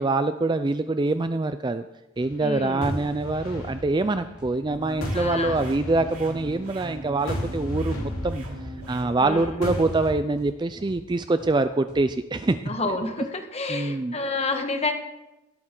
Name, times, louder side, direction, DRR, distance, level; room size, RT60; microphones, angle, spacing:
voice 1, 0.0-1.9 2.2-8.4 8.9-13.0 13.7-14.2, right 2 dB, 20° right, 10 dB, 0.3 m, -25 dB
sound 1, 2.2-10.1, left 1 dB, 80° left, 3.8 m, -34 dB
voice 2, 2.4-2.9 5.1-5.6 9.2-9.8 12.7-14.9, left 3 dB, 30° left, 5 dB, 1.5 m, -29 dB
sound 2, 4.4-4.5 4.9-5.0 5.4-5.5 5.9-6.0 6.4-6.5 6.9-7.0 7.4-7.5 7.9-8.0 8.4-8.5 8.9-9.0 9.4-9.5 9.9-10.0 10.4-10.5 10.9-11.0 11.4-11.5 11.9-12.0, equal, 5° right, 2.0 m, -46 dB
sound 3, 4.7-9.1, right 1 dB, 85° right, 3.6 m, -40 dB
17.5 x 12.5 x 3.8 m, 0.97 s
head